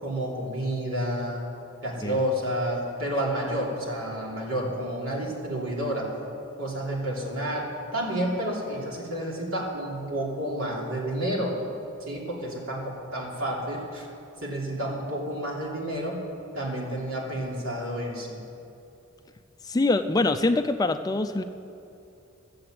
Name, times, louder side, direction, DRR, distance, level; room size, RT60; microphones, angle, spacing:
voice 1, 0.0-1.5 1.8-6.1 6.6-11.5 12.0-14.1 14.4-16.2 16.5-18.4, right 1 dB, 80° right, -3 dB, 3.1 m, -30 dB
voice 2, 19.7-21.4, left 2 dB, 20° left, 9 dB, 0.3 m, -24 dB
14.0 x 7.7 x 7.7 m, 2.8 s
head